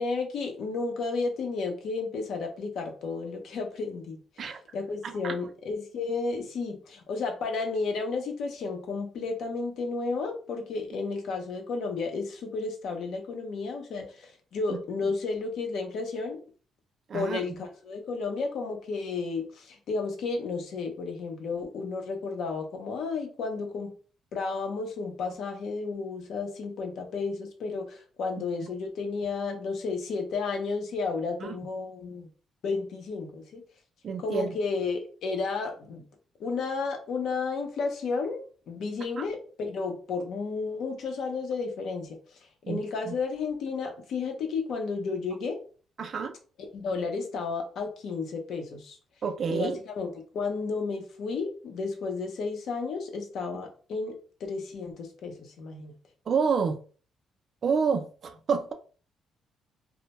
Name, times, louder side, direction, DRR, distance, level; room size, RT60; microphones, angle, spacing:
voice 1, 0.0-16.4 17.1-23.9 24.3-32.3 32.6-33.6 34.2-36.0 36.4-42.2 42.7-45.6 46.7-49.0 49.5-55.9, left 4 dB, 70° left, 0.6 m, -32 dB
voice 2, 5.0-5.3 14.7-14.8 17.1-17.4 31.4-31.6 34.0-34.5 39.2-39.3 42.6-42.8 43.1-43.2 46.0-46.4 49.2-49.8 56.3-56.8 57.6-58.7, right 5 dB, 55° right, 0.3 m, -28 dB
2.1 x 2.1 x 2.8 m
cardioid pair, 90°, 0 cm